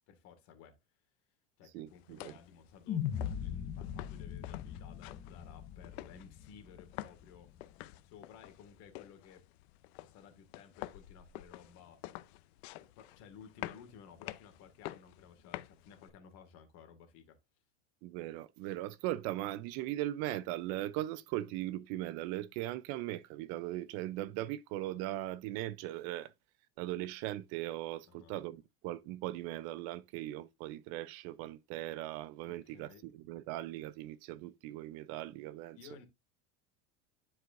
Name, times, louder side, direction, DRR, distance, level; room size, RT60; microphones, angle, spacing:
voice 1, 0.1-0.8 1.6-7.5 8.0-9.5 10.0-12.0 12.8-17.4 28.1-28.4 32.5-33.0 35.7-36.1, left 7 dB, 55° left, 2.0 m, -56 dB
voice 2, 1.7-2.3 18.0-26.3 26.8-35.8, right 15 dB, 55° right, 0.5 m, -39 dB
sound 1, 1.9-16.1, left 17 dB, 75° left, 0.6 m, -49 dB
sound 2, 2.9-7.2, left 9 dB, 30° left, 0.8 m, -40 dB
11.0 x 4.7 x 2.5 m
supercardioid pair, 150°, 31 cm